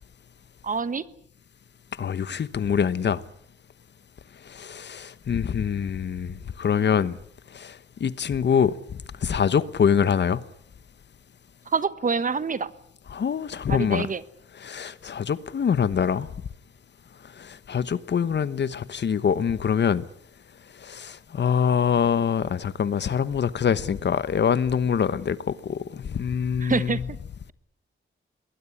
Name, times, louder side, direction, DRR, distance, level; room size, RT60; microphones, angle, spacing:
voice 1, 0.6-1.0 11.7-12.7 13.7-14.2 26.6-27.0, right 5 dB, 40° right, 1.2 m, -26 dB
voice 2, 2.0-3.2 4.5-7.2 7.5-10.4 13.1-14.1 14.6-16.3 17.4-20.0 20.8-27.0, left 7 dB, 55° left, 1.1 m, -25 dB
22.5 x 20.0 x 9.9 m
wide cardioid pair, 160°, 21 cm